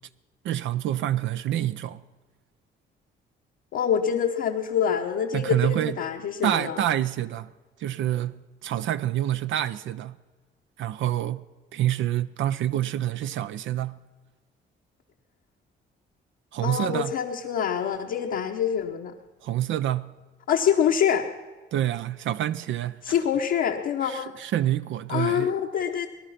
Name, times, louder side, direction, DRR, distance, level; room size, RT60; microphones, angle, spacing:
voice 1, 0.4-2.0 5.3-6.0 6.4-7.5 7.8-10.2 10.8-11.4 11.7-14.0 16.5-17.1 19.4-20.1 21.7-23.1 24.0-25.5, right 12 dB, 75° right, 0.5 m, -27 dB
voice 2, 3.7-6.8 16.6-19.1 20.5-21.3 23.0-24.3 25.1-26.1, left 8 dB, 80° left, 1.2 m, -25 dB
19.5 x 11.5 x 5.8 m
cardioid pair, 90°, 20 cm